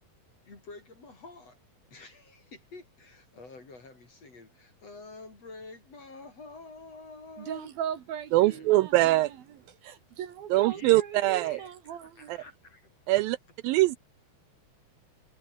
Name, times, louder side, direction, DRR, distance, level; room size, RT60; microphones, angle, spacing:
voice 1, 0.5-1.6 1.9-7.7 8.4-8.7 10.5-12.9, left 3 dB, 35° left, 6.8 m, -48 dB
voice 2, 7.4-12.3, right 9 dB, 65° right, 3.5 m, -39 dB
voice 3, 8.3-9.3 10.5-11.6 12.3-12.4 13.1-13.4 13.6-14.0, right 17 dB, 90° right, 2.1 m, -23 dB
omnidirectional pair, 4.8 m